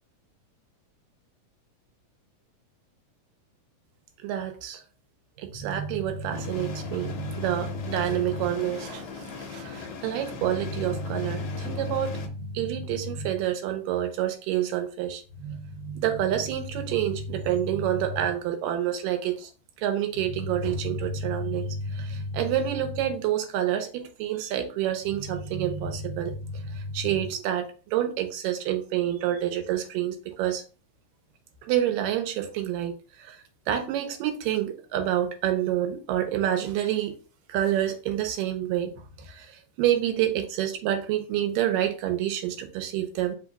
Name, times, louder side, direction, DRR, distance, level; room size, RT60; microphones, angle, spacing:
voice 1, 4.2-4.8 5.4-19.5 19.8-30.6 31.6-33.4 33.7-37.1 37.5-38.9 39.2-43.4, right 9 dB, 85° right, 2.4 m, -28 dB
sound 1, 6.3-12.3, left 5 dB, 75° left, 1.6 m, -39 dB
5.2 x 2.3 x 3.9 m
omnidirectional pair, 3.8 m